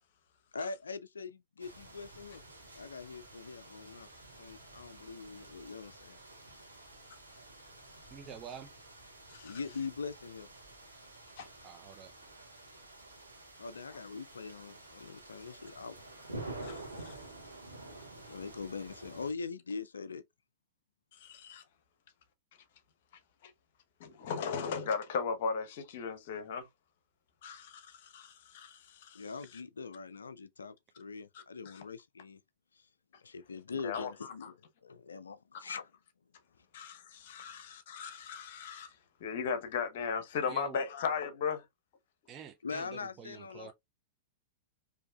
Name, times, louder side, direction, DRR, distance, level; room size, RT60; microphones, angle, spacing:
voice 1, 0.5-2.4 2.7-4.1 4.4-6.2 6.5-6.8 9.4-10.5 13.6-15.9 18.3-20.2 29.1-32.4 32.7-32.9 33.2-35.9 36.6-36.7 42.6-43.7, left 4 dB, 75° left, 0.3 m, -42 dB
sound 1, 1.6-19.3, right 2 dB, 90° right, 1.2 m, -50 dB
voice 2, 8.1-8.7 11.6-12.1 40.5-40.8 42.3-43.7, right 8 dB, 30° right, 0.7 m, -47 dB
voice 3, 21.2-21.6 23.4-23.5 24.0-26.7 27.4-29.2 33.7-34.5 36.7-38.9 39.2-41.6, left 6 dB, 55° left, 0.9 m, -37 dB
4.6 x 2.7 x 2.3 m
figure-of-eight pair, 100°, 0 cm